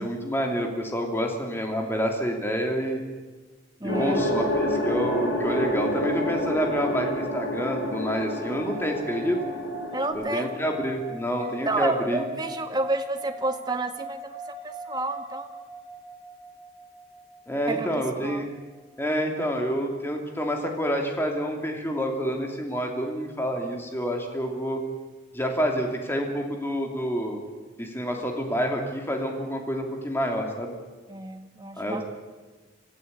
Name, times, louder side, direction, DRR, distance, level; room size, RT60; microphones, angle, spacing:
voice 1, 0.0-3.0 3.8-9.4 10.1-12.2 17.5-18.5 19.0-24.8 25.3-27.4 27.8-30.7 31.8-32.0, equal, 15° left, 2 dB, 2.9 m, -28 dB
voice 2, 3.8-4.2 9.9-10.5 11.6-14.4 14.6-15.5 17.7-18.4 31.1-32.0, right 2 dB, 20° right, 6 dB, 1.6 m, -30 dB
sound 1, 3.9-10.1, equal, 65° left, 6.4 m, -28 dB
sound 2, 8.5-19.8, right 2 dB, 30° left, 7.1 m, -42 dB
25.5 x 15.0 x 8.3 m, 1.3 s
head